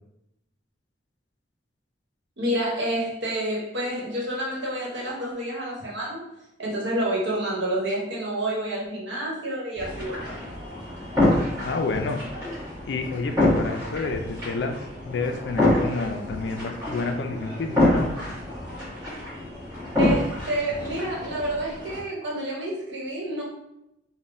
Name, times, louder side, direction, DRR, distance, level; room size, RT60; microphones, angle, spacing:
voice 1, 2.4-6.2 6.6-10.2 20.0-23.4, right 1 dB, 80° right, -4 dB, 1.1 m, -29 dB
sound 1, 9.8-22.0, left 1 dB, 20° right, 1.3 m, -27 dB
voice 2, 11.6-12.2 12.8-14.8 15.0-18.1, left 3 dB, 65° left, 5 dB, 0.3 m, -29 dB
3.6 x 2.2 x 2.6 m, 0.84 s
head